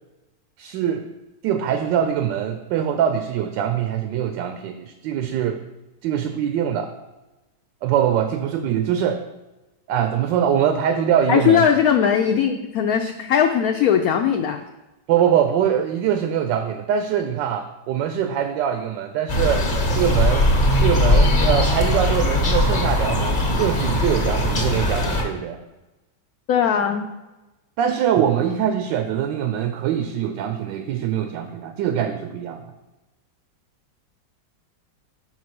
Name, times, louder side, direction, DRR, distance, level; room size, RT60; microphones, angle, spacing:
voice 1, 0.6-1.0 1.4-5.6 6.0-6.9 7.8-9.2 9.9-11.6 15.1-19.7 19.9-20.5 20.8-25.6 27.8-32.7, right 9 dB, 80° right, 8 dB, 1.2 m, -23 dB
voice 2, 11.3-14.6 26.5-27.1, left 8 dB, 70° left, 5 dB, 0.8 m, -19 dB
sound 1, 19.3-25.2, left 1 dB, 35° left, 0.9 m, -20 dB
6.0 x 4.7 x 5.9 m, 1.0 s
omnidirectional pair, 2.0 m